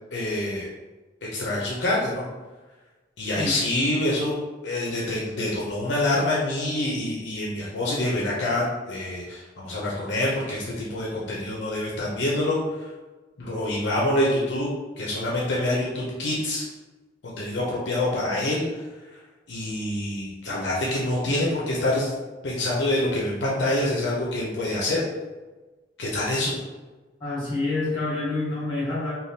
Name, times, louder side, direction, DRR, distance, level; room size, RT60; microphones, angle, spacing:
voice 1, 0.1-0.7 1.2-2.2 3.2-12.9 13.4-16.6 17.2-18.8 19.5-22.1 22.4-25.0 26.0-26.6, left 1 dB, 65° left, -4 dB, 0.5 m, -26 dB
voice 2, 27.2-29.1, left 2 dB, 25° left, -7 dB, 1.2 m, -27 dB
3.4 x 2.2 x 2.6 m, 1.2 s
head